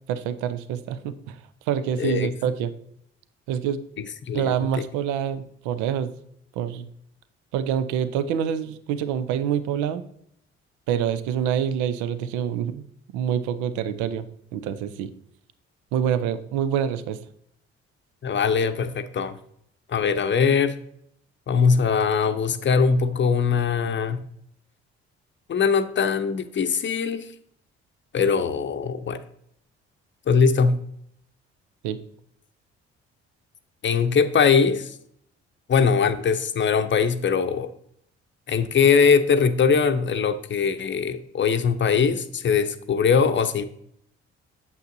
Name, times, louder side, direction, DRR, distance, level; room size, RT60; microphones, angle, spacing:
voice 1, 0.1-1.4 1.7-2.7 3.5-3.8 4.3-6.1 6.6-6.9 7.5-10.0 10.9-12.8 13.1-14.3 14.5-15.1 15.9-17.2 31.8-32.0, right 9 dB, 65° right, 0.6 m, -26 dB
voice 2, 2.0-2.3 4.3-4.8 18.2-19.4 19.9-20.7 21.5-24.2 25.5-27.3 28.1-29.2 30.3-30.8 33.8-34.9 35.7-37.7 38.5-43.6, left 6 dB, 35° left, 0.7 m, -21 dB
9.0 x 6.9 x 2.7 m
figure-of-eight pair, 45°, 33 cm